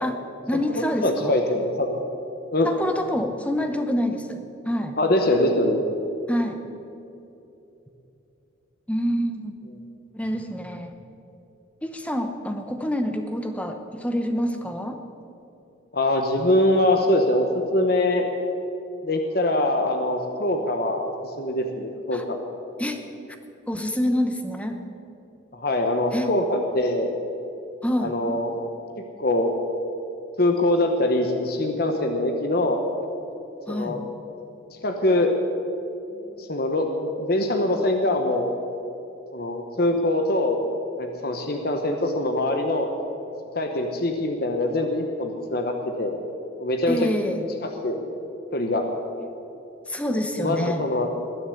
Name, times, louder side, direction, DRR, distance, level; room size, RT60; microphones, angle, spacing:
voice 1, 0.0-1.3 2.6-5.0 6.3-6.6 8.9-9.5 10.1-10.9 11.8-15.0 22.1-22.2 22.8-23.0 23.7-24.8 26.1-26.3 27.8-28.1 33.7-34.0 46.9-47.5 49.9-50.8, equal, 5° left, 5 dB, 0.9 m, -27 dB
voice 2, 0.8-2.0 2.5-2.7 5.0-5.8 15.9-18.3 19.0-22.4 25.5-27.1 28.0-28.6 29.2-29.5 30.4-32.8 33.7-34.0 34.8-35.3 36.4-38.5 39.3-40.6 41.0-42.9 43.5-46.2 46.6-47.1 47.6-48.0 48.5-48.9 50.4-51.1, left 1 dB, 50° left, 4 dB, 1.1 m, -23 dB
20.5 x 7.0 x 8.5 m, 2.8 s
head